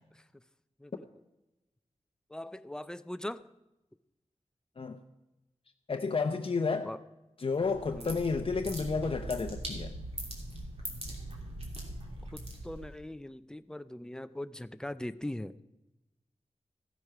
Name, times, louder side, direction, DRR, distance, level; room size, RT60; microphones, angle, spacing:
voice 1, 2.3-3.4 6.8-7.0 7.9-8.2 12.3-15.5, left 1 dB, 5° left, 0.4 m, -40 dB
voice 2, 5.9-6.9 7.4-9.9, left 4 dB, 50° left, 0.7 m, -31 dB
sound 1, 7.5-13.0, right 1 dB, 55° right, 2.9 m, -41 dB
15.0 x 7.9 x 5.8 m
wide cardioid pair, 105°, 12 cm